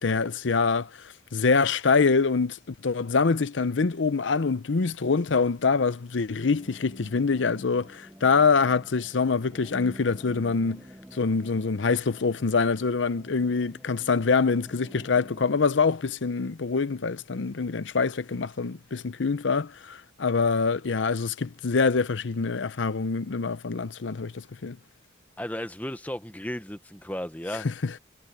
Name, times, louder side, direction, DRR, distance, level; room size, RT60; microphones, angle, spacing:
voice 1, 0.0-0.9 1.3-10.8 11.1-24.8 27.6-28.0, left 4 dB, 85° left, 0.7 m, -25 dB
sound 1, 6.6-15.5, equal, 5° right, 1.7 m, -48 dB
voice 2, 25.4-27.7, left 1 dB, 10° left, 1.1 m, -34 dB
head